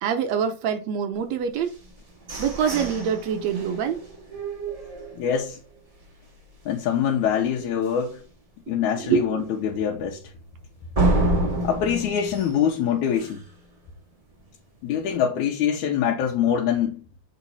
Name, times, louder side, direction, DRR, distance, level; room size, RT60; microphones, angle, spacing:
voice 1, 0.0-1.7 2.4-4.0 8.9-9.5, right 7 dB, 70° right, 1.9 m, -25 dB
sound 1, 1.7-5.6 6.0-6.1 6.5-6.9 7.3-7.4 7.9-8.0 10.9-13.6, right 1 dB, 20° right, 0.9 m, -28 dB
voice 2, 5.1-5.6 6.7-8.2 8.7-10.2 11.6-13.4 14.8-17.0, left 8 dB, 85° left, 2.2 m, -24 dB
7.3 x 3.9 x 4.0 m
omnidirectional pair, 3.4 m